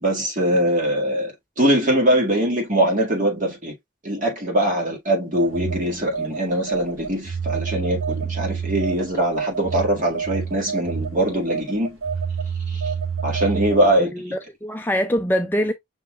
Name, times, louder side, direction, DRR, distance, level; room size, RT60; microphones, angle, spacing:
voice 1, 0.0-3.7 4.0-12.0 12.7-12.8 13.2-14.1, right 1 dB, 40° right, 1.9 m, -22 dB
Telephone, 5.3-14.0, right 6 dB, 80° right, 1.1 m, -28 dB
voice 2, 14.0-15.7, equal, 10° left, 0.3 m, -23 dB
5.7 x 3.7 x 2.3 m
head